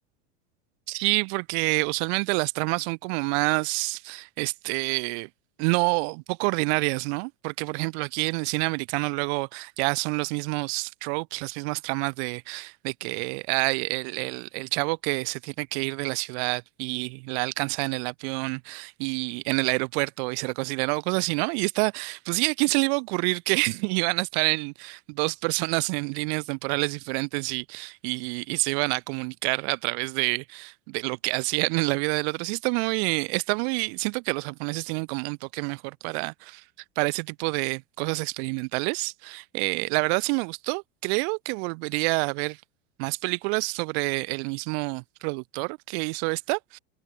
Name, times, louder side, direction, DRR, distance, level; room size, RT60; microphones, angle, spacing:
voice 1, 0.9-5.3 5.6-36.6 37.0-42.6 43.0-46.8, right 36 dB, 60° right, 0.9 m, -28 dB
supercardioid pair, 110°, 37 cm